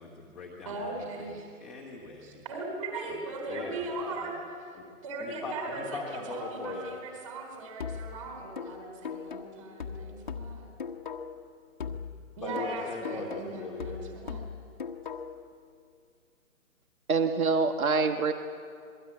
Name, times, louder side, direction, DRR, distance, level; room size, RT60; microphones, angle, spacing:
voice 1, 0.0-1.3 1.6-2.4 3.1-3.2 3.5-4.3 4.7-4.8 5.2-6.9 11.8-12.0 12.4-14.0, left 3 dB, ahead, -10 dB, 1.2 m, -40 dB
voice 2, 0.7-1.5 2.2-4.4 4.6-4.7 5.0-10.7 12.4-14.4, right 2 dB, 20° right, 2 dB, 4.0 m, -38 dB
sound 1, 7.8-11.5 11.8-15.5, left 6 dB, 35° left, 1.2 m, -39 dB
voice 3, 17.1-18.3, right 4 dB, 70° right, 6 dB, 1.7 m, -25 dB
26.5 x 21.5 x 9.8 m, 2.4 s
hypercardioid pair, 180°, 44 cm